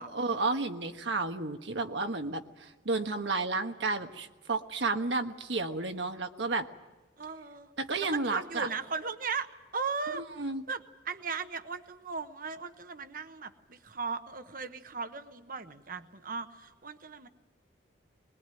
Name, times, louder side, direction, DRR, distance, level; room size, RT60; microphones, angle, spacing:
voice 1, 0.0-6.7 7.8-8.7 10.4-10.6, right 3 dB, 75° right, 6 dB, 1.4 m, -32 dB
voice 2, 7.2-7.7 8.1-17.3, right 5 dB, 50° right, 9 dB, 1.1 m, -37 dB
21.5 x 21.5 x 9.1 m, 1.1 s
head